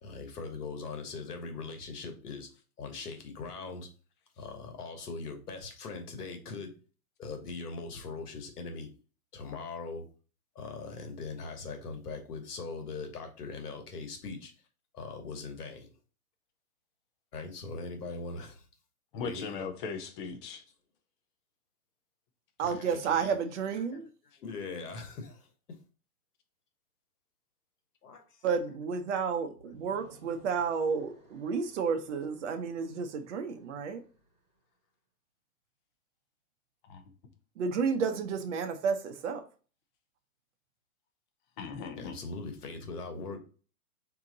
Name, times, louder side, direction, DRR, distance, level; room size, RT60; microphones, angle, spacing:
voice 1, 0.0-2.5 2.8-3.9 4.4-6.7 7.2-8.9 9.3-10.0 10.5-14.5 14.9-15.9 17.3-18.7 19.2-19.7 22.6-23.3 24.4-25.5 28.0-28.4 42.0-43.4, left 4 dB, 90° left, 1.2 m, -41 dB
voice 2, 19.1-20.6 36.8-37.0 41.6-42.2, left 5 dB, 35° left, 0.6 m, -38 dB
voice 3, 22.6-24.0 28.4-34.0 37.6-39.4, right 6 dB, 55° right, 0.8 m, -31 dB
sound 1, 29.5-34.6, right 1 dB, 15° right, 2.2 m, -58 dB
3.7 x 2.9 x 3.8 m
hypercardioid pair, 150°, 45 cm